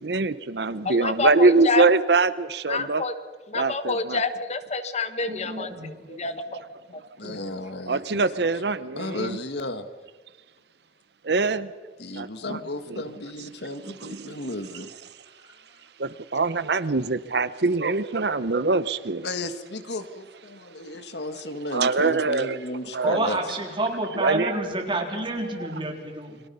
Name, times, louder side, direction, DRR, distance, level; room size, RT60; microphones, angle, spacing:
voice 1, 0.0-3.0 3.5-4.2 6.1-6.2 7.9-9.4 11.2-11.7 12.1-12.6 12.9-13.0 14.0-14.3 16.0-19.3 21.7-22.6 22.9-23.2 24.1-24.5, right 3 dB, 65° right, 15 dB, 0.8 m, -23 dB
voice 2, 0.8-1.8 2.7-3.1 3.5-6.6 6.9-7.0, left 3 dB, 40° left, 11 dB, 1.2 m, -28 dB
voice 3, 5.3-5.9 7.2-7.4 23.0-26.4, right 2 dB, 30° right, 2 dB, 3.7 m, -28 dB
voice 4, 7.2-8.3 9.0-9.9 12.0-14.9 15.4-15.5 19.2-23.4, left 2 dB, 70° left, 10 dB, 1.7 m, -34 dB
30.0 x 23.0 x 5.6 m, 1.4 s
head